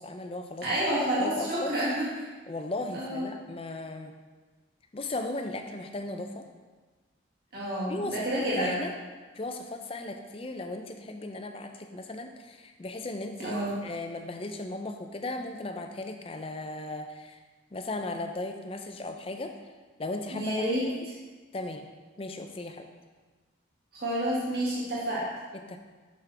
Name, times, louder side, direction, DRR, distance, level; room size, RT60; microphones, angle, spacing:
voice 1, 0.0-0.7 1.2-1.7 2.5-4.1 4.9-6.5 7.9-8.9 9.3-17.4 17.7-19.5 20.0-20.5 21.5-21.9 22.2-22.9 25.5-25.8, left 2 dB, 30° left, 5 dB, 0.4 m, -36 dB
voice 2, 0.6-2.3 2.9-3.3 7.5-8.7 13.4-13.7 20.3-21.2 23.9-25.3, right 1 dB, 50° right, -7 dB, 1.8 m, -29 dB
6.3 x 5.8 x 3.3 m, 1.3 s
head